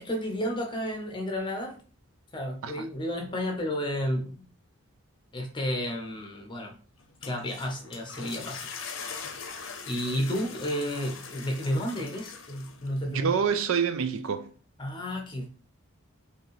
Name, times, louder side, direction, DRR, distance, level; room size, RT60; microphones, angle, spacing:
voice 1, 0.0-1.7 2.3-4.5 5.3-6.8 7.2-8.8 9.3-9.5 9.9-13.4 14.8-15.5, equal, 20° left, 0.8 m, -32 dB
sound 1, 7.0-13.0, left 5 dB, 60° left, 0.7 m, -42 dB
voice 2, 13.1-14.5, right 6 dB, 65° right, 0.4 m, -27 dB
5.2 x 2.8 x 3.1 m
head